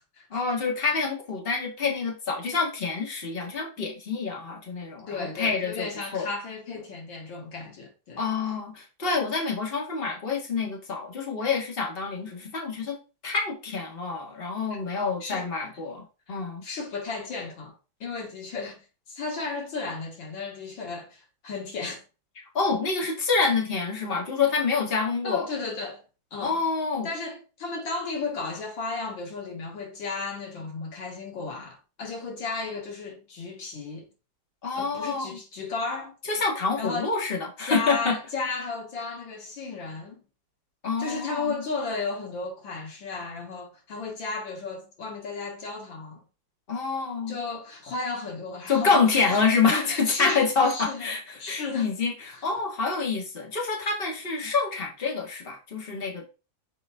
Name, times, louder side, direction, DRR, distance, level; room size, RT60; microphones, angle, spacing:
voice 1, 0.3-5.9 6.1-6.3 8.2-13.0 13.2-16.7 22.5-25.5 26.4-27.1 34.6-35.4 36.3-38.2 40.8-41.6 46.7-47.4 48.7-56.3, left 4 dB, 30° left, 1.9 m, -27 dB
voice 2, 5.1-8.2 15.2-15.5 16.6-17.7 18.0-18.8 19.1-22.0 25.2-26.0 26.3-26.6 27.0-34.1 34.8-36.1 36.8-37.1 37.6-40.2 41.0-46.2 47.3-49.5 49.7-51.9 52.3-52.4, left 4 dB, 90° left, 2.4 m, -34 dB
6.8 x 4.6 x 3.5 m
omnidirectional pair, 2.0 m